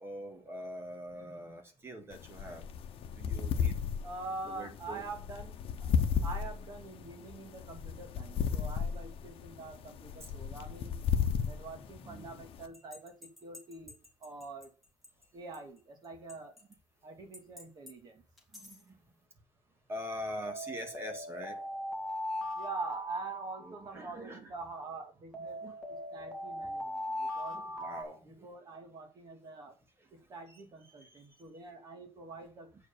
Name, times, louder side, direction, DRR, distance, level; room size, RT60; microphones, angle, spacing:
voice 1, 0.0-2.7 3.1-3.8 4.5-5.0 10.2-10.3 11.4-11.5 11.8-12.3 18.5-19.0 19.9-21.6 23.6-24.5 25.6-25.7 27.3-28.5 30.0-30.1 31.0-31.2, equal, 25° right, 1.9 m, -44 dB
sound 1, 2.1-12.7, left 7 dB, 65° left, 0.9 m, -34 dB
voice 2, 4.0-5.9 6.2-11.0 11.4-14.7 15.3-16.6 17.0-18.2 22.6-25.6 26.1-27.6 28.2-29.8 30.1-32.8, right 3 dB, 40° right, 2.4 m, -45 dB
sound 2, 12.7-14.6 15.0-15.1 15.5-15.6 16.3-16.7 17.3-17.9 18.4-18.7 20.5-24.2 25.3-28.0, left 1 dB, ahead, 2.2 m, -40 dB
8.1 x 4.7 x 6.9 m
cardioid pair, 155°, 10 cm